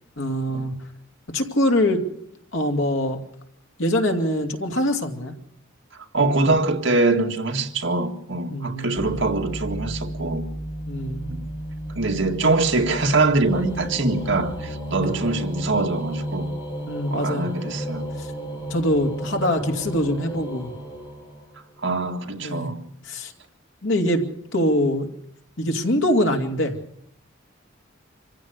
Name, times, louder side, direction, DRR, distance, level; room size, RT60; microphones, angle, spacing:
voice 1, 0.2-0.7 1.3-2.0 2.5-3.2 3.8-5.3 8.5-9.2 10.9-11.3 15.0-15.1 16.9-17.5 18.2-18.3 18.7-20.7 22.4-22.7 23.0-23.3 23.8-24.2 24.5-25.1 25.6-26.8, left 1 dB, 80° left, 2.7 m, -23 dB
voice 2, 6.1-10.5 11.3-11.5 12.0-16.5 17.1-18.1 21.8-22.8, right 3 dB, 70° right, 2.0 m, -23 dB
sound 1, 9.0-14.6, right 1 dB, 20° right, 2.9 m, -33 dB
sound 2, 10.9-21.8, equal, 25° left, 7.8 m, -34 dB
26.0 x 15.5 x 6.7 m
head